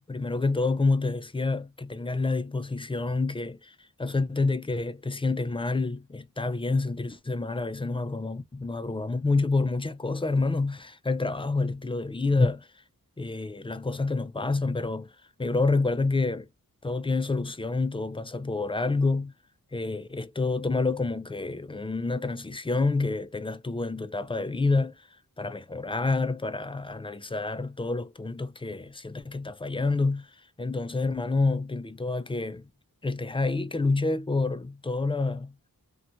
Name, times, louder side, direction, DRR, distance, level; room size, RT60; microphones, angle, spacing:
voice 1, 0.0-3.7 4.0-12.7 13.2-15.1 15.4-16.5 16.8-19.3 19.7-24.9 25.4-30.3 30.6-32.7 33.0-35.5, left 3 dB, 15° left, 0.3 m, -28 dB
2.6 x 2.2 x 2.8 m
wide cardioid pair, 55°, 35 cm